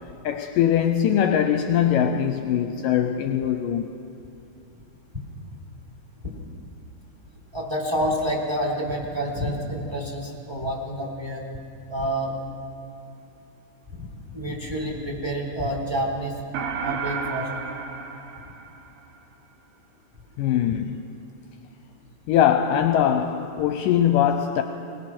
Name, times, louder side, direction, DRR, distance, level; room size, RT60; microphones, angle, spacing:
voice 1, 0.2-3.9 20.4-21.0 22.3-24.6, left 9 dB, 75° left, 7 dB, 2.1 m, -21 dB
voice 2, 7.5-11.4 11.9-12.4 13.9-14.1 14.3-16.3 16.8-17.5, equal, 5° right, -1 dB, 3.1 m, -28 dB
sound 1, 16.5-19.2, right 5 dB, 75° right, 2.9 m, -32 dB
21.5 x 21.0 x 6.1 m, 2.6 s
omnidirectional pair, 4.2 m